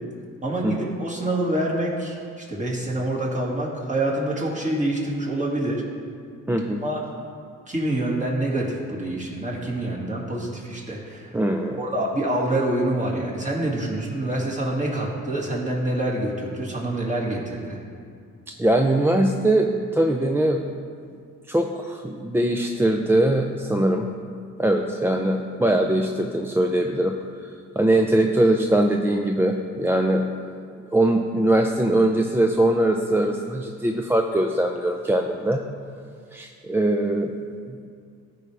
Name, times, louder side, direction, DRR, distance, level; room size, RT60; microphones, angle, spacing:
voice 1, 0.4-5.8 6.8-7.0 7.7-11.3 11.8-17.8, right 1 dB, 25° right, -3 dB, 2.1 m, -26 dB
voice 2, 6.5-6.8 11.3-11.8 18.6-20.6 21.5-24.1 24.6-27.2 27.8-30.3 30.9-35.6 36.3-37.3 37.7-37.9, right 1 dB, 10° right, 3 dB, 0.4 m, -21 dB
14.0 x 4.9 x 3.4 m, 2.3 s
cardioid pair, 90°, 30 cm